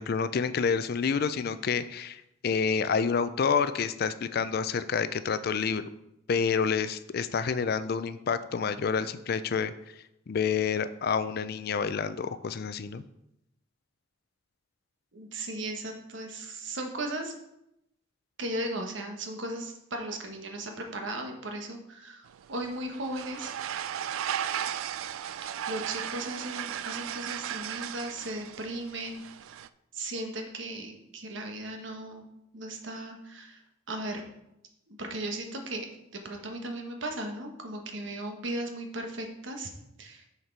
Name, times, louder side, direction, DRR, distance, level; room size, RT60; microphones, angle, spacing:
voice 1, 0.0-5.8 6.3-9.7 10.3-13.0, left 6 dB, 50° left, 13 dB, 0.4 m, -28 dB
voice 2, 15.1-17.3 18.4-23.5 25.7-29.2 29.9-32.3 32.5-33.6 33.9-34.2 34.9-35.9 36.1-39.7 40.0-40.2, right 1 dB, 65° right, 4 dB, 1.2 m, -36 dB
sound 1, 22.3-29.7, right 10 dB, 90° right, 0.3 m, -36 dB
6.5 x 5.9 x 4.6 m, 0.82 s
head